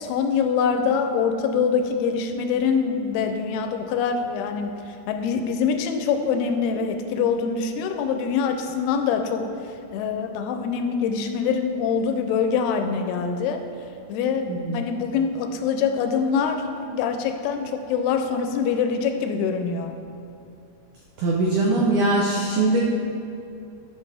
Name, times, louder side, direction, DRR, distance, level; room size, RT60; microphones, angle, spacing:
voice 1, 0.0-9.5 9.9-13.6 14.1-19.9, left 6 dB, 85° left, 6 dB, 2.4 m, -24 dB
voice 2, 14.4-14.8 21.2-22.8, right 2 dB, 90° right, -3 dB, 1.7 m, -21 dB
12.5 x 6.1 x 3.4 m, 2.6 s
omnidirectional pair, 4.7 m